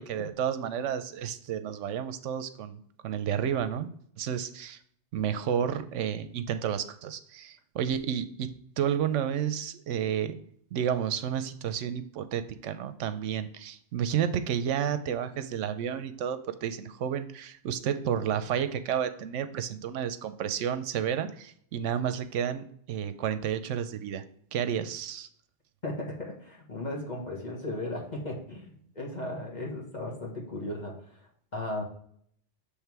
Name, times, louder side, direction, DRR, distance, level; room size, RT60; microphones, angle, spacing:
voice 1, 0.0-4.8 5.1-10.4 10.7-24.2 24.5-25.3, right 9 dB, 85° right, 11 dB, 0.9 m, -31 dB
voice 2, 25.8-30.9 31.5-31.8, left 1 dB, 40° left, -1 dB, 1.5 m, -36 dB
7.3 x 3.5 x 4.6 m, 0.63 s
omnidirectional pair, 1.2 m